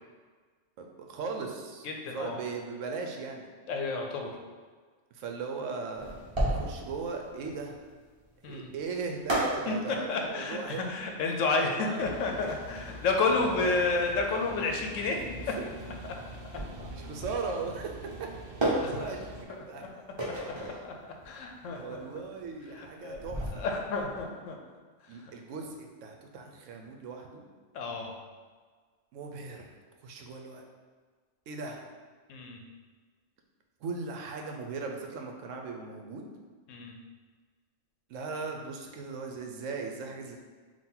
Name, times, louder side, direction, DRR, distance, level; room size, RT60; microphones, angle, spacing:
voice 1, 0.8-3.5 5.1-6.2 6.5-7.8 8.4-10.9 11.5-12.1 13.4-13.7 15.5-15.7 16.9-17.9 18.8-19.8 21.7-23.7 25.1-27.5 29.1-29.7 30.0-30.7 31.5-31.8 33.8-36.2 38.1-40.4, right 4 dB, 75° right, 3 dB, 0.9 m, -38 dB
voice 2, 1.8-2.4 3.7-4.3 8.4-8.7 9.7-15.2 18.8-19.1 19.8-19.9 20.4-20.5 20.8-20.9 21.2-22.0 22.7-23.2 23.6-24.6 25.2-25.3 27.7-28.1 32.3-32.6 36.7-37.0, left 3 dB, 75° left, 2 dB, 1.0 m, -31 dB
sound 1, 5.9-24.2, right 1 dB, 25° right, 0.8 m, -36 dB
sound 2, 12.0-19.4, right 1 dB, 55° right, 0.6 m, -45 dB
3.7 x 2.6 x 4.3 m, 1.5 s
omnidirectional pair, 1.3 m